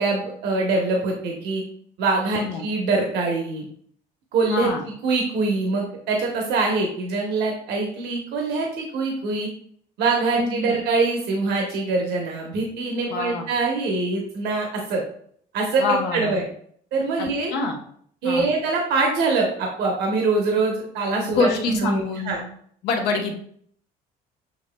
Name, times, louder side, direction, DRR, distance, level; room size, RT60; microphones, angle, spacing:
voice 1, 0.0-1.6 2.0-3.7 4.3-4.7 5.0-9.5 10.0-15.0 15.5-16.4 16.9-17.5 18.2-22.4, right 3 dB, 80° right, 0 dB, 1.0 m, -24 dB
voice 2, 2.3-2.6 4.5-4.8 10.3-10.8 13.1-13.5 15.8-16.4 17.2-17.8 18.2-18.5 21.2-22.4 22.8-23.4, left 3 dB, 90° left, 2 dB, 1.0 m, -25 dB
7.1 x 3.1 x 2.2 m, 0.62 s
cardioid pair, 110°, 17 cm